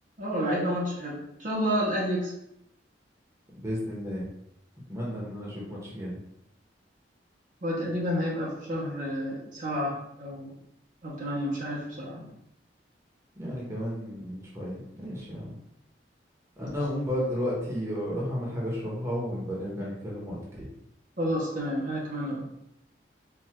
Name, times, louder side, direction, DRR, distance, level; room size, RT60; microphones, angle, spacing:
voice 1, 0.2-2.3 7.6-10.6 11.0-12.3 16.6-16.8 21.2-22.5, equal, 45° right, -5 dB, 1.2 m, -30 dB
voice 2, 3.5-4.2 4.9-6.2 13.4-15.6 16.6-20.7, equal, 15° right, -5 dB, 1.3 m, -33 dB
4.7 x 2.8 x 3.7 m, 0.80 s
head